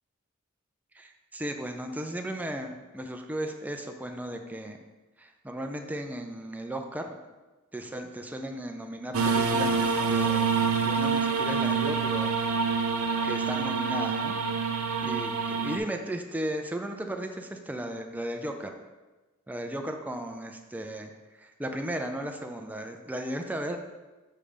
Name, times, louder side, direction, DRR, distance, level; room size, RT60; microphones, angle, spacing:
voice 1, 0.9-4.8 5.2-7.2 7.7-10.5 10.8-12.4 13.0-14.4 15.0-18.7 19.5-23.8, right 1 dB, 10° right, 4 dB, 0.4 m, -35 dB
sound 1, 9.1-15.8, right 5 dB, 80° right, 0.5 m, -26 dB
6.9 x 3.3 x 5.0 m, 1.2 s
head